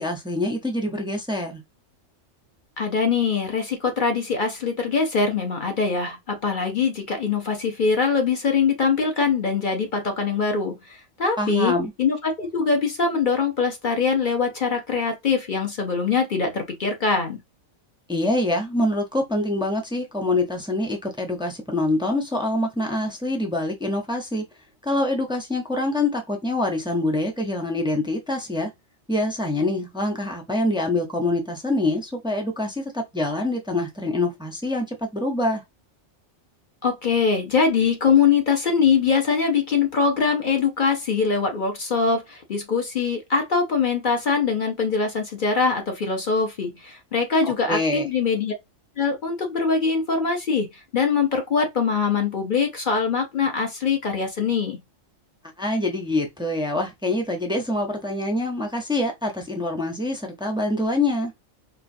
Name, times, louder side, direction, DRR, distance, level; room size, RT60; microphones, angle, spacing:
voice 1, 0.0-1.6 11.4-11.9 18.1-24.4 24.8-28.7 29.1-35.6 47.4-48.1 55.6-61.3, left 2 dB, 5° right, 0.4 m, -25 dB
voice 2, 2.8-11.7 12.0-17.4 36.8-48.5 49.0-54.8, left 5 dB, 45° left, 0.7 m, -23 dB
4.5 x 2.4 x 2.6 m
omnidirectional pair, 1.4 m